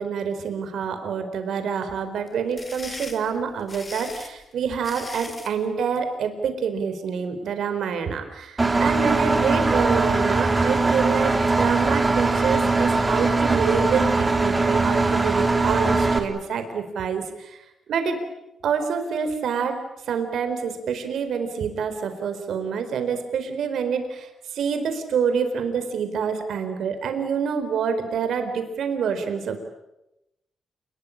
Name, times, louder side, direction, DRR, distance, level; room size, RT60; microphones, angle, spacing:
voice 1, 0.0-17.6 17.9-18.2 18.6-19.8 20.1-29.6, right 6 dB, 80° right, 7 dB, 4.5 m, -27 dB
sound 1, 2.3-5.6, left 2 dB, 25° left, 3.2 m, -39 dB
Engine, 8.6-16.2, right 3 dB, 20° right, 3.3 m, -21 dB
29.0 x 21.5 x 8.8 m, 0.89 s
wide cardioid pair, 130°, 0 cm